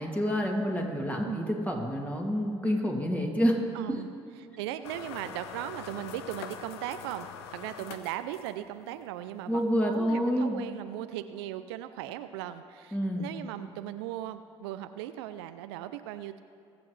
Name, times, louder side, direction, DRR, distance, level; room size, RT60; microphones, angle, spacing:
voice 1, 0.0-3.6 3.9-4.0 9.5-10.6 12.9-13.3, equal, 10° left, 0 dB, 2.5 m, -28 dB
voice 2, 3.7-4.1 4.4-16.4, right 12 dB, 85° right, 11 dB, 0.4 m, -38 dB
sound 1, 4.8-8.8, left 8 dB, 85° left, 0.6 m, -44 dB
22.5 x 7.7 x 3.2 m, 2.6 s
hypercardioid pair, 55°, 13 cm